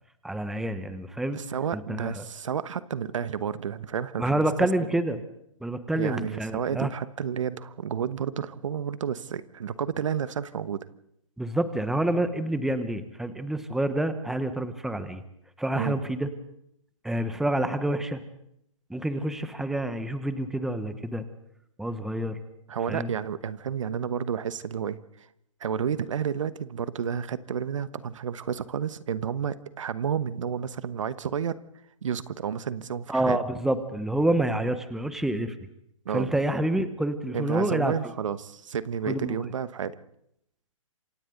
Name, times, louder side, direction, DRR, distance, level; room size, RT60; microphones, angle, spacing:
voice 1, 0.2-1.4 1.7-2.2 4.2-5.2 5.6-6.9 11.4-15.2 15.6-16.3 17.0-18.2 18.9-21.2 21.8-22.4 22.9-23.1 33.1-35.5 36.1-37.9 39.1-39.4, right 1 dB, ahead, 11 dB, 1.2 m, -28 dB
voice 2, 1.3-4.4 5.9-10.8 15.7-16.0 22.7-25.0 25.6-31.6 32.0-33.4 36.0-36.3 37.3-39.9, right 7 dB, 65° right, 14 dB, 1.2 m, -31 dB
27.0 x 26.0 x 4.0 m, 0.75 s
hypercardioid pair, 135°, 17 cm